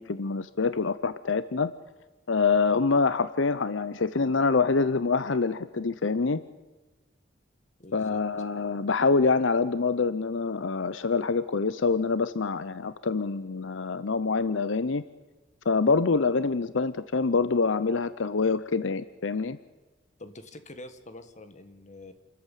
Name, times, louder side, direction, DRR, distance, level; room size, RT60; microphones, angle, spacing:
voice 1, 0.0-1.7 2.3-6.4 7.9-15.0 15.7-19.6, left 4 dB, 75° left, 14 dB, 0.7 m, -25 dB
voice 2, 7.8-8.2 20.2-22.1, left 2 dB, 40° left, 9 dB, 1.7 m, -45 dB
28.5 x 14.0 x 9.2 m, 1.2 s
head